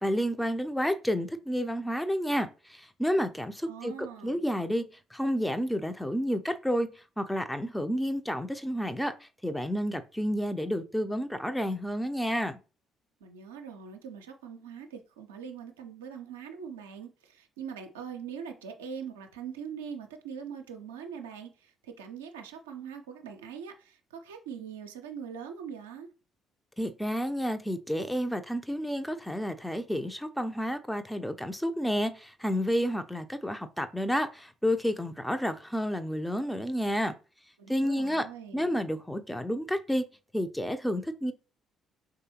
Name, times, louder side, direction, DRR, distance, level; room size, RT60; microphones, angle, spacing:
voice 1, 0.0-4.8 5.1-6.9 7.2-12.6 26.8-37.1 37.7-38.2 38.5-40.0 40.3-41.3, equal, 5° left, 0.4 m, -30 dB
voice 2, 3.7-4.4 13.2-26.1 37.6-38.7, right 7 dB, 80° right, 0.4 m, -42 dB
3.6 x 3.3 x 2.9 m
figure-of-eight pair, 45°, 0 cm